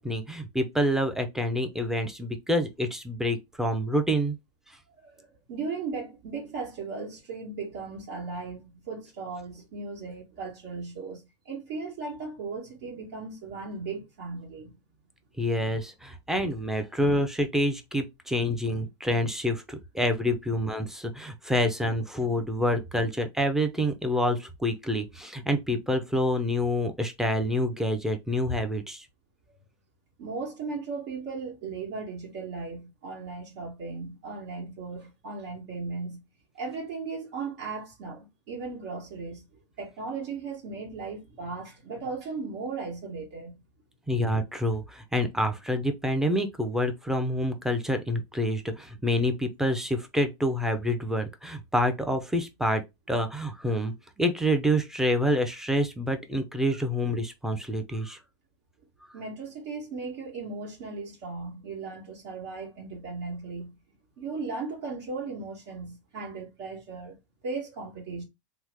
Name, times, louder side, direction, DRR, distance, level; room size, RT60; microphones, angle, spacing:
voice 1, 0.0-4.4 15.4-29.1 44.1-58.2, equal, 5° right, 0.5 m, -27 dB
voice 2, 5.0-14.8 30.2-36.2 36.5-39.4 39.8-43.6 59.1-63.8 64.2-67.2 67.4-68.2, right 4 dB, 65° right, 1.3 m, -37 dB
3.0 x 2.0 x 3.4 m
supercardioid pair, 125°, 15 cm